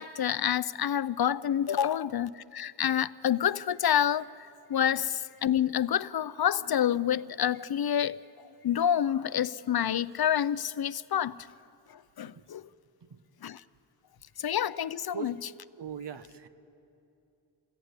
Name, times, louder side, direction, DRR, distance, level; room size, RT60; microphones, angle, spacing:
voice 1, 0.0-8.2 8.4-11.4 11.9-12.6 13.4-13.6 14.4-15.3, left 9 dB, 60° left, 0.6 m, -28 dB
voice 2, 15.8-16.5, right 8 dB, 70° right, 1.4 m, -40 dB
27.0 x 21.0 x 9.8 m
cardioid pair, 60°, 43 cm